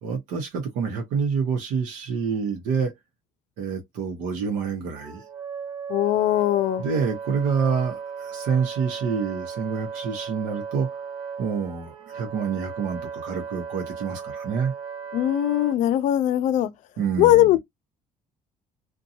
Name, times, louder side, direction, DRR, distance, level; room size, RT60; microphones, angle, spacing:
voice 1, 0.0-2.9 3.6-5.3 6.8-10.9 11.4-14.7 17.0-17.6, right 6 dB, 85° right, 0.8 m, -27 dB
Wind instrument woodwind instrument, 4.9-15.8, right 6 dB, 35° right, 0.7 m, -36 dB
voice 2, 5.9-6.8 15.1-16.7 17.2-17.6, left 13 dB, 65° left, 0.5 m, -20 dB
2.6 x 2.2 x 2.7 m
cardioid pair, 150°, 13 cm